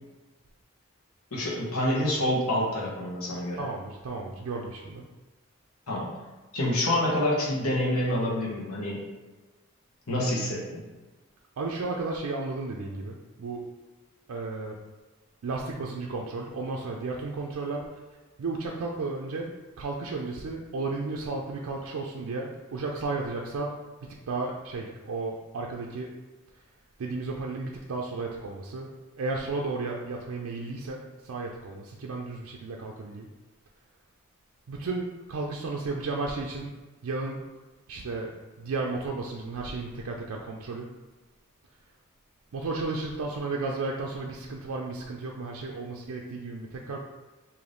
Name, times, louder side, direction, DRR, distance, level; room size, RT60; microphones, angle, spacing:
voice 1, 1.3-3.6 5.9-6.1 6.5-9.1 10.1-10.8, left 1 dB, 85° left, -3 dB, 1.0 m, -27 dB
voice 2, 3.6-5.0 11.6-13.6 14.3-14.8 15.4-17.9 18.4-23.8 24.0-26.1 27.0-28.9 29.2-33.3 34.7-36.7 37.0-37.4 37.9-38.3 38.6-40.9 42.5-47.0, right 3 dB, 80° right, -1 dB, 0.4 m, -33 dB
3.3 x 2.6 x 3.8 m, 1.2 s
head